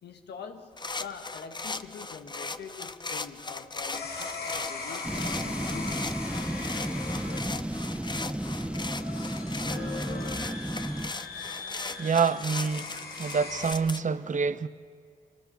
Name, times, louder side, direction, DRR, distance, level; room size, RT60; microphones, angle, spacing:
voice 1, 0.0-6.3, left 6 dB, 90° left, 1.5 m, -44 dB
sound 1, 0.8-14.0, left 3 dB, 25° left, 0.8 m, -38 dB
sound 2, 3.9-13.7, left 4 dB, 70° left, 2.5 m, -40 dB
sound 3, 5.0-11.1, right 1 dB, 5° right, 1.0 m, -33 dB
voice 2, 12.0-12.9 13.2-14.7, right 5 dB, 50° right, 0.9 m, -26 dB
23.5 x 19.0 x 6.9 m
cardioid pair, 55°, 17 cm